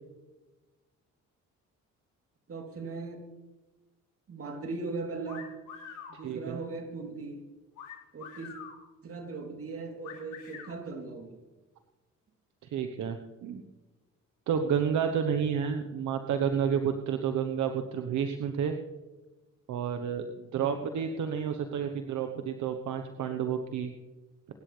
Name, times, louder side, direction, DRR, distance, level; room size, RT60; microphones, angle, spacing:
voice 1, 2.5-3.2 4.3-5.5 6.2-7.4 8.1-8.5 9.0-11.4, right 3 dB, 50° right, 2 dB, 3.4 m, -38 dB
sound 1, 5.3-6.2 7.8-8.8 10.0-10.8, left 7 dB, 85° left, 4.0 m, -45 dB
voice 2, 6.2-6.6 12.7-13.6 14.5-18.7 19.7-23.9, right 7 dB, 75° right, 6 dB, 1.1 m, -30 dB
23.5 x 11.5 x 3.4 m, 1.2 s
cardioid pair, 90°, 30 cm